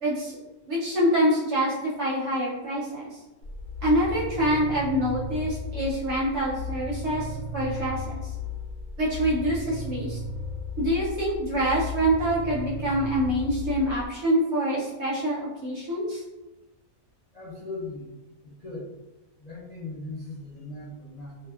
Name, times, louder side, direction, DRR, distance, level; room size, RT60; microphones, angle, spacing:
voice 1, 0.0-0.4 0.7-3.1 3.8-8.2 9.0-10.2 10.8-16.2, equal, 60° right, -6 dB, 0.8 m, -26 dB
sound 1, 3.4-14.1, left 3 dB, 90° right, 1.1 m, -35 dB
voice 2, 17.3-18.1 18.4-18.9 19.4-21.5, left 2 dB, 55° left, -9 dB, 0.4 m, -38 dB
2.7 x 2.1 x 2.3 m, 1.0 s
omnidirectional pair, 1.6 m